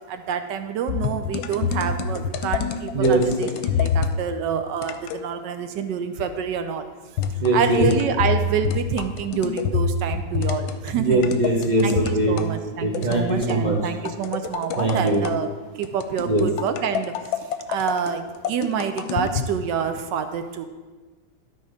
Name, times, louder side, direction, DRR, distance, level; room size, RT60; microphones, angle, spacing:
voice 1, 0.1-6.9 7.5-11.3 11.8-15.5 15.8-17.1 17.7-20.7, right 7 dB, 70° right, 8 dB, 1.1 m, -27 dB
sound 1, 0.9-4.2 4.8-5.3 7.2-12.5 12.9-13.6 14.1-15.4 15.8-19.5, left 6 dB, 75° left, 1.3 m, -26 dB
voice 2, 7.4-7.9 10.9-12.4 12.8-13.8 14.8-15.2 16.3-16.4, right 2 dB, 50° right, -1 dB, 0.5 m, -21 dB
12.5 x 4.3 x 4.9 m, 1.3 s
omnidirectional pair, 2.3 m